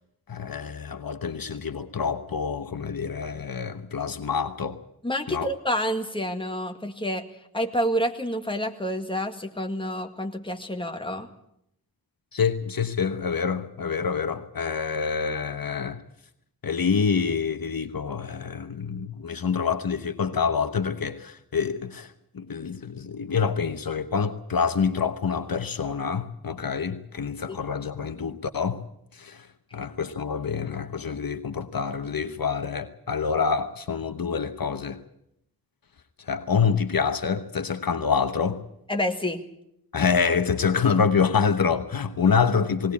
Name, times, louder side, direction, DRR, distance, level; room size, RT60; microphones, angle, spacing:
voice 1, 0.3-4.8 5.3-5.5 12.3-16.0 16.6-28.8 29.1-29.5 29.7-35.0 36.3-38.6 39.9-42.9, left 6 dB, 65° left, 1.1 m, -26 dB
voice 2, 5.0-7.3 7.5-11.3 27.5-27.6 38.9-39.4, equal, 15° left, 1.9 m, -28 dB
19.5 x 19.0 x 8.5 m
wide cardioid pair, 105°, 38 cm